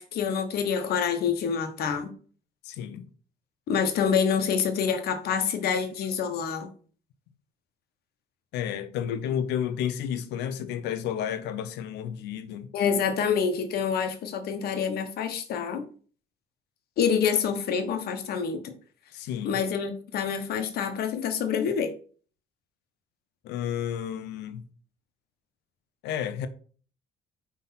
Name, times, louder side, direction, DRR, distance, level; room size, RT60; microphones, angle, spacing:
voice 1, 0.0-2.1 3.7-6.7 12.7-15.9 17.0-18.7 19.4-21.9, left 7 dB, 65° left, 1.3 m, -27 dB
voice 2, 2.6-3.1 8.5-12.7 19.1-19.6 23.4-24.6 26.0-26.5, left 9 dB, 85° left, 0.8 m, -31 dB
5.7 x 3.6 x 5.8 m
cardioid pair, 110°, 17 cm